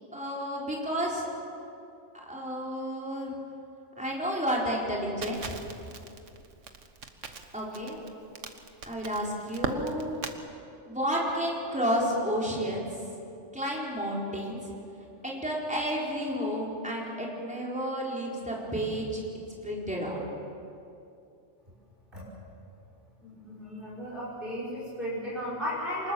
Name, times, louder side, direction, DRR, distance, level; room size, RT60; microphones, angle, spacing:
voice 1, 0.1-1.3 2.2-3.3 4.0-5.6 7.5-8.0 8.9-10.2 10.9-12.9 13.5-14.6 15.2-19.2 19.6-20.2, equal, 5° right, -4 dB, 4.3 m, -31 dB
Crackle, 5.2-10.4, right 5 dB, 85° right, 1.7 m, -39 dB
voice 2, 23.2-26.1, equal, 45° right, -7 dB, 5.7 m, -35 dB
25.0 x 20.5 x 7.1 m, 2.6 s
omnidirectional pair, 1.2 m